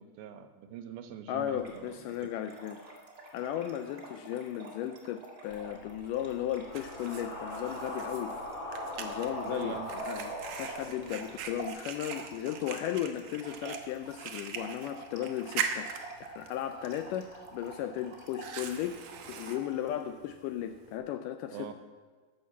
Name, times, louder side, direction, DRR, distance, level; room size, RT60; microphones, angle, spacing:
voice 1, 0.0-2.3 9.5-10.0 21.5-21.7, right 9 dB, 85° right, 8 dB, 2.7 m, -43 dB
voice 2, 1.3-2.8 3.3-8.3 9.0-21.7, left 11 dB, 85° left, 8 dB, 1.9 m, -36 dB
Trickle dribble / Fill (with liquid), 1.5-20.0, right 4 dB, 30° right, 1.4 m, -48 dB
sound 1, 5.5-11.6, left 1 dB, 55° left, 3.2 m, -41 dB
Fire, 6.0-21.0, right 7 dB, 70° right, 1.7 m, -42 dB
13.0 x 6.3 x 7.2 m, 1.5 s
omnidirectional pair, 4.2 m